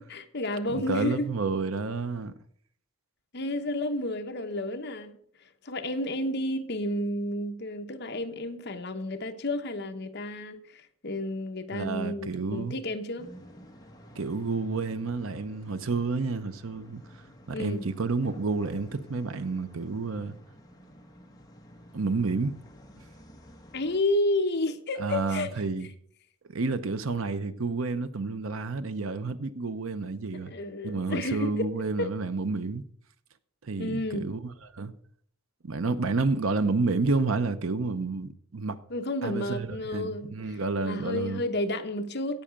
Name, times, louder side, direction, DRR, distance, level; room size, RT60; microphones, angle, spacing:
voice 1, 0.0-1.3 3.3-5.2 5.6-13.3 17.5-17.8 23.7-25.5 30.5-31.6 32.0-32.1 33.8-34.3 38.9-40.6 40.8-42.4, left 1 dB, 55° left, 1.0 m, -31 dB
voice 2, 0.7-2.3 11.7-12.7 14.2-17.0 17.5-20.3 21.9-22.5 25.0-25.9 26.5-30.5 30.8-32.8 33.6-34.4 34.7-34.9 35.6-38.8 39.2-41.4, right 3 dB, 80° right, 0.8 m, -30 dB
sound 1, 13.2-24.0, equal, 20° left, 1.3 m, -51 dB
16.0 x 5.6 x 5.1 m
head